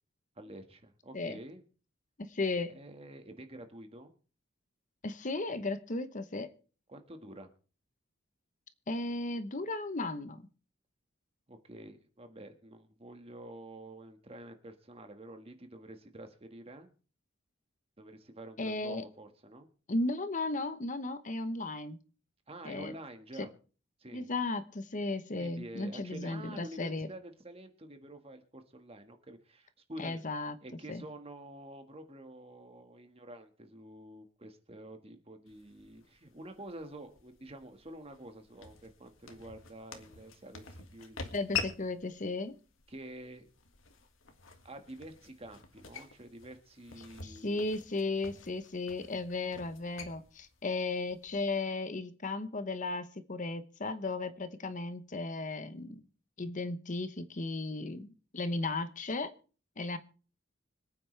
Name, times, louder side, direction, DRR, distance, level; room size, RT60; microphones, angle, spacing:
voice 1, 0.4-1.6 2.7-4.1 6.9-7.5 11.5-16.9 18.0-19.7 22.5-23.5 24.0-24.3 25.4-30.2 30.6-41.3 42.9-43.5 44.6-47.7, right 1 dB, 30° right, 7 dB, 1.6 m, -48 dB
voice 2, 2.2-2.7 5.0-6.5 8.9-10.5 18.6-19.0 19.9-22.0 22.6-22.9 23.4-23.5 24.1-27.1 30.0-30.5 30.9-31.0 41.3-42.6 47.2-56.0 56.4-58.1 58.3-59.3 59.8-60.0, left 2 dB, 40° left, 11 dB, 0.9 m, -35 dB
sound 1, 35.5-51.6, left 6 dB, 85° left, 1.9 m, -46 dB
25.5 x 9.1 x 3.3 m, 0.39 s
head